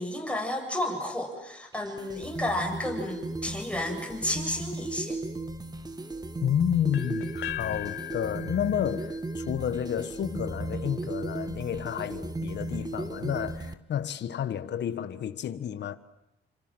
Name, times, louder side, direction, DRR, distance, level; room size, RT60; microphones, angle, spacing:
voice 1, 0.0-5.2, left 1 dB, 5° left, 7.7 m, -32 dB
sound 1, 1.7-13.7, right 2 dB, 20° right, 1.7 m, -36 dB
voice 2, 6.4-16.0, left 9 dB, 60° left, 1.4 m, -30 dB
sound 2, 6.9-10.8, left 15 dB, 85° left, 1.2 m, -40 dB
30.0 x 26.0 x 7.8 m
cardioid pair, 90°, 20 cm